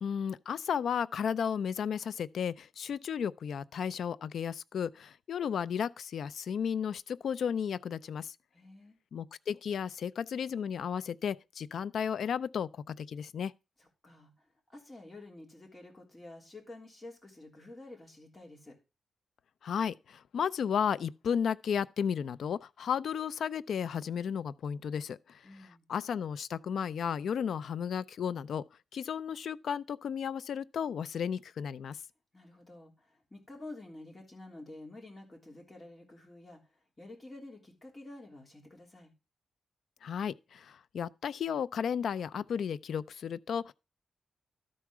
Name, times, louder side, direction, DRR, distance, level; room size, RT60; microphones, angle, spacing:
voice 1, 0.0-8.3 9.1-13.5 19.6-25.2 25.9-28.6 28.9-32.0 40.0-43.7, left 7 dB, 70° left, 0.4 m, -34 dB
voice 2, 8.5-9.0 13.8-18.8 25.4-25.8 32.3-36.6 37.0-39.1, left 2 dB, 20° left, 3.3 m, -50 dB
12.5 x 4.7 x 6.1 m
wide cardioid pair, 140°, 0 cm